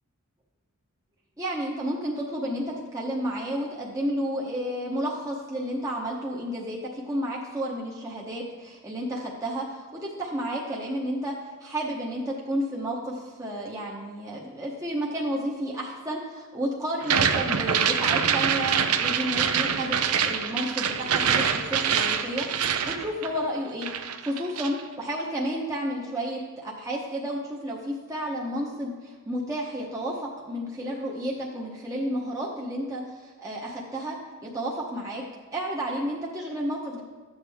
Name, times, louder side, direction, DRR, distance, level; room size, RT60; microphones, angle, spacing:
voice 1, 1.4-20.0 20.2-34.2 34.4-35.2 35.5-37.0, equal, 15° right, -4 dB, 0.9 m, -31 dB
sound 1, 17.0-23.6 23.8-24.8, right 7 dB, 85° right, 0.6 m, -25 dB
12.0 x 8.0 x 3.5 m, 1.4 s
head